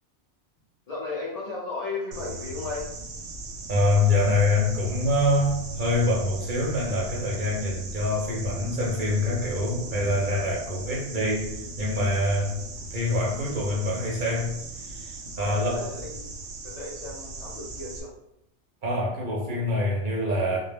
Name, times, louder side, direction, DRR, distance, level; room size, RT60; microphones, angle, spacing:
voice 1, 0.9-2.9 15.3-16.3 16.6-18.1, left 3 dB, 55° left, -6 dB, 0.4 m, -35 dB
sound 1, 2.1-18.0, right 2 dB, 80° right, 0.9 m, -38 dB
voice 2, 3.7-12.6 12.9-14.5 14.8-15.8 18.8-20.6, left 2 dB, 55° right, -3 dB, 0.6 m, -25 dB
2.2 x 2.0 x 3.3 m, 0.79 s
omnidirectional pair, 1.2 m